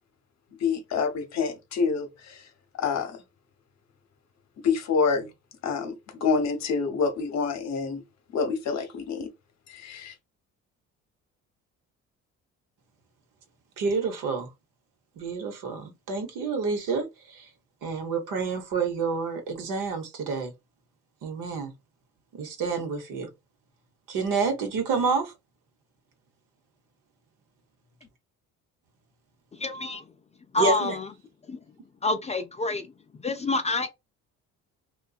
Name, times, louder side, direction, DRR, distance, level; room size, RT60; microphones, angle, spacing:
voice 1, 0.6-2.5 2.7-3.2 4.6-5.3 5.6-8.0 8.3-9.3 9.7-10.1, left 5 dB, 55° left, 0.8 m, -27 dB
voice 2, 13.8-14.5 15.2-17.5 17.8-20.5 21.2-21.7 22.3-23.3 24.1-25.3 30.6-31.0, right 4 dB, 75° right, 0.9 m, -28 dB
voice 3, 29.6-30.0 30.5-31.1 31.5-31.6 32.0-32.9 33.2-33.9, left 2 dB, 20° left, 0.4 m, -27 dB
2.6 x 2.3 x 2.3 m
supercardioid pair, 75°, 32 cm